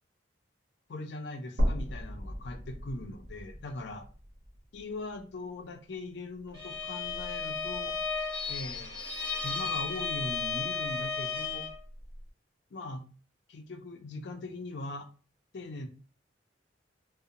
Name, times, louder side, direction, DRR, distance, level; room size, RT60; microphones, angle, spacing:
voice 1, 0.9-4.1 4.7-7.9 8.5-9.1 9.4-11.7 12.7-13.1 13.5-15.1 15.5-15.9, left 2 dB, 65° left, 8 dB, 0.4 m, -40 dB
sound 1, 1.6-5.7 6.1-6.2 7.6-7.7, equal, 80° right, 0.9 m, -35 dB
Bowed string instrument, 6.5-11.8, left 5 dB, 20° left, 0.8 m, -34 dB
2.7 x 2.0 x 2.5 m, 0.38 s
head